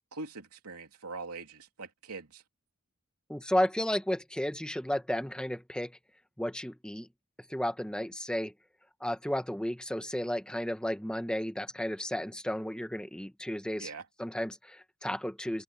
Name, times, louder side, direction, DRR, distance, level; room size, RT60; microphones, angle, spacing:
voice 1, 0.1-2.4 13.8-14.0, right 3 dB, 90° right, 3.0 m, -42 dB
voice 2, 3.3-6.0 6.4-7.1 7.5-8.5 9.0-13.9 14.2-15.6, equal, 5° left, 1.3 m, -33 dB
open air
head